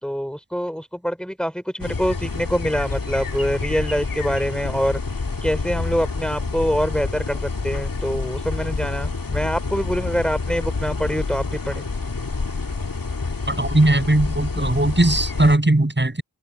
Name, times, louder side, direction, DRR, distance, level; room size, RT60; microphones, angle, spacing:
voice 1, 0.0-5.0 5.4-11.8, equal, ahead, 4.8 m, -25 dB
sound 1, 1.8-15.6, left 3 dB, 60° left, 2.3 m, -28 dB
voice 2, 13.5-16.2, right 1 dB, 30° right, 7.0 m, -18 dB
wide cardioid pair, 50°, 38 cm